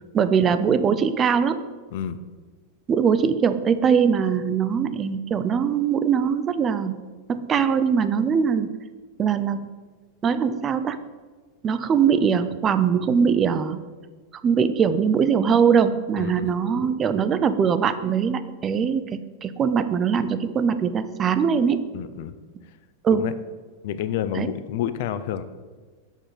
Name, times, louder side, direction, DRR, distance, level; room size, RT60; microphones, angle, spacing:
voice 1, 0.1-1.6 2.9-6.9 7.3-8.7 9.2-9.7 10.2-11.0 11.6-13.8 14.4-21.9 23.0-23.2 24.3-24.5, right 7 dB, 25° right, 12 dB, 0.4 m, -21 dB
voice 2, 16.2-16.6 21.9-22.4 23.1-23.3 23.8-25.4, left 10 dB, 50° left, 12 dB, 0.4 m, -29 dB
7.1 x 3.7 x 5.8 m, 1.4 s
figure-of-eight pair, 90°, 0 cm